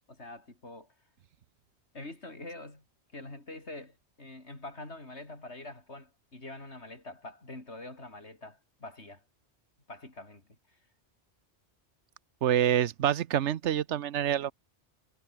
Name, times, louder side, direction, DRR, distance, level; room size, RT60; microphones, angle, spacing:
voice 1, 0.1-0.9 1.9-2.8 3.1-9.2 9.9-10.8, left 2 dB, 75° left, 5.3 m, -45 dB
voice 2, 12.4-14.5, right 10 dB, 90° right, 1.1 m, -26 dB
omnidirectional pair, 1.1 m